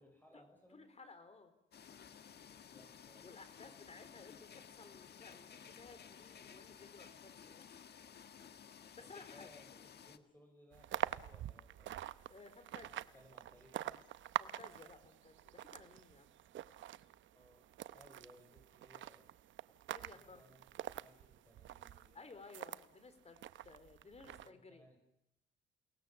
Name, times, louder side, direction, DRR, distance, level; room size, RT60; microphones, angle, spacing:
voice 1, 0.0-0.9 2.7-3.3 9.0-12.0 12.9-14.1 16.5-16.6 17.3-17.6 17.9-19.3 20.1-22.5 24.2-25.1, equal, 10° left, 3 dB, 6.3 m, -64 dB
voice 2, 0.7-1.5 3.2-7.7 8.9-9.5 12.3-13.0 14.4-16.4 19.9-20.4 22.1-24.8, left 4 dB, 35° left, 10 dB, 4.3 m, -57 dB
sound 1, 1.7-10.2, left 8 dB, 55° left, 1.6 m, -56 dB
sound 2, 10.7-22.9 23.4-24.5, right 12 dB, 75° right, 0.8 m, -46 dB
29.5 x 19.0 x 7.3 m, 0.81 s
cardioid pair, 90°, 20 cm